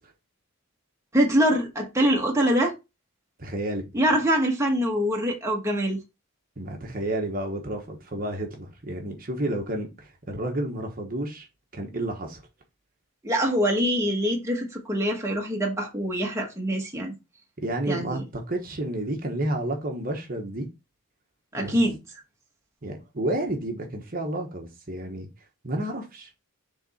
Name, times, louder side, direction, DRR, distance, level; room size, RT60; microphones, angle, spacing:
voice 1, 1.1-2.7 3.9-6.0 13.2-17.1 17.9-18.2 21.5-22.0, equal, 15° right, 1.3 m, -24 dB
voice 2, 3.4-4.0 6.6-11.5 11.7-12.4 17.6-20.7 21.6-21.8 22.8-25.3 25.6-26.3, right 1 dB, 40° right, 1.2 m, -31 dB
7.0 x 3.5 x 4.3 m
head